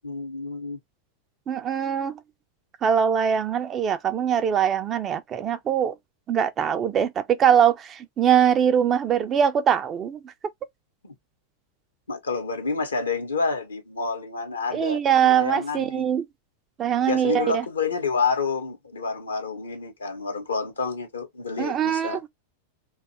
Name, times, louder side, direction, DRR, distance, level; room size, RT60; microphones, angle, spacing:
voice 1, 0.0-0.8 11.0-11.1 12.1-16.0 17.1-22.2, left 4 dB, 75° left, 0.8 m, -29 dB
voice 2, 1.5-2.1 2.8-6.0 6.3-10.3 14.7-16.3 16.8-17.6 21.6-22.2, right 8 dB, 25° right, 0.4 m, -22 dB
2.5 x 2.3 x 2.8 m
figure-of-eight pair, 90°, 0 cm